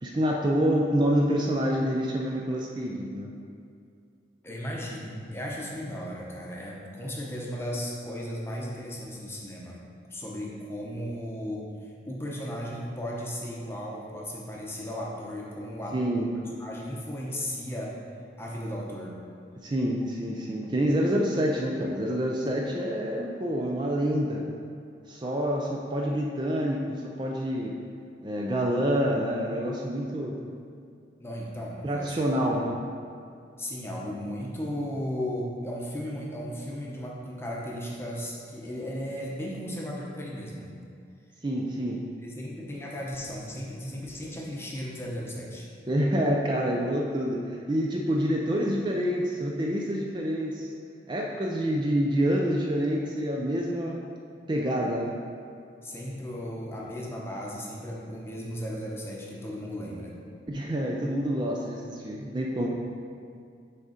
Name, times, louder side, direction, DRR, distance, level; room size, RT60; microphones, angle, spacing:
voice 1, 0.0-3.3 15.9-16.3 19.6-24.4 25.1-27.8 28.2-30.4 31.8-32.7 41.4-42.0 45.9-50.7 51.1-54.0 54.5-55.2 60.5-62.7, equal, 25° right, -1 dB, 0.4 m, -27 dB
voice 2, 4.4-9.8 10.1-18.0 18.4-19.1 31.2-32.6 33.6-40.7 42.2-45.7 55.8-60.2, equal, 15° left, -3 dB, 0.8 m, -36 dB
6.6 x 3.6 x 5.0 m, 2.3 s
head